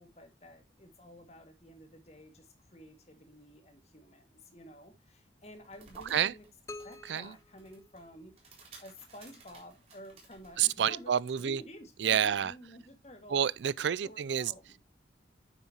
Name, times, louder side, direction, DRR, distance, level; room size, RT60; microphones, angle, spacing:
voice 1, 0.0-6.5 6.8-11.1 11.4-13.4 14.0-14.8, equal, 35° left, 2.0 m, -51 dB
sound 1, 5.4-10.8, right 3 dB, 35° right, 3.9 m, -57 dB
sound 2, 6.7-8.6, left 2 dB, 15° left, 0.4 m, -49 dB
voice 2, 10.6-11.6 12.0-12.5 13.3-14.5, right 9 dB, 80° right, 0.4 m, -28 dB
9.4 x 7.4 x 2.9 m
head